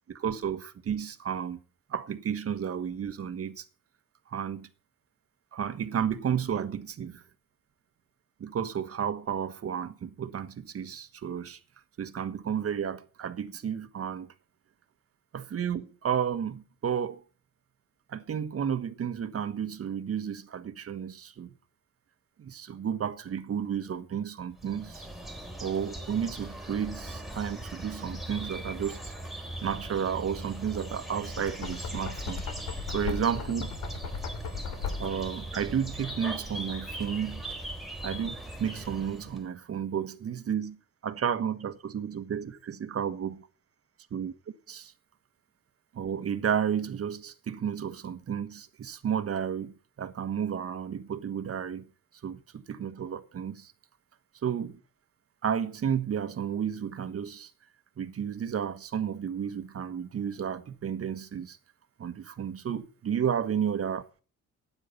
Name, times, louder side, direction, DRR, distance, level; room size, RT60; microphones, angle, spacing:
voice 1, 0.1-1.6 1.9-3.6 4.3-4.7 5.5-7.2 8.4-11.6 12.0-14.3 15.3-17.2 18.1-21.5 22.4-25.1 25.6-29.1 29.6-33.8 35.0-37.4 38.0-40.8 41.0-43.5 44.1-44.3 44.7-44.9 45.9-51.9 52.2-53.7 54.4-54.8 55.4-57.5 58.0-61.6 62.0-64.1, right 8 dB, 50° right, 1.4 m, -32 dB
sound 1, 24.6-39.4, right 1 dB, ahead, 3.9 m, -39 dB
Knock, 31.3-35.4, left 7 dB, 80° left, 2.9 m, -38 dB
12.5 x 9.7 x 5.7 m
cardioid pair, 90°, 30 cm